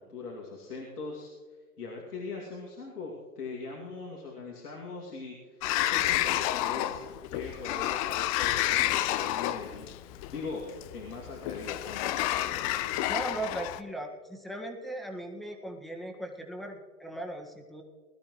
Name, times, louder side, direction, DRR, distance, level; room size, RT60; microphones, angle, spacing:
voice 1, 0.1-1.3 1.8-7.0 7.3-9.9 10.3-10.6 10.9-12.7, left 4 dB, 85° left, -2 dB, 2.6 m, -40 dB
Sliding door, 5.6-13.8, left 14 dB, 25° left, 0.4 m, -30 dB
voice 2, 13.1-17.8, right 1 dB, ahead, 1 dB, 1.7 m, -38 dB
21.0 x 12.5 x 3.1 m, 1.5 s
hypercardioid pair, 110°, 45 cm